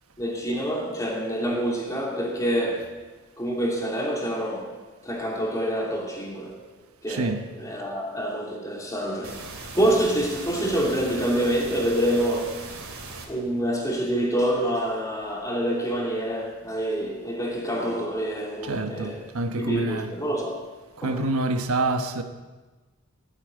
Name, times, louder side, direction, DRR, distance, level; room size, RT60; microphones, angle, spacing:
voice 1, 0.2-2.9 3.4-4.7 5.0-6.6 7.0-7.3 7.6-9.4 9.7-12.6 13.3-19.2 19.6-20.6 21.0-21.2, right 1 dB, 15° left, 2.8 m, -26 dB
voice 2, 7.1-7.5 18.6-20.1 21.0-22.2, right 2 dB, 80° right, 1.2 m, -27 dB
sound 1, 9.2-13.2, right 3 dB, 60° right, 3.0 m, -39 dB
17.5 x 8.8 x 8.9 m
head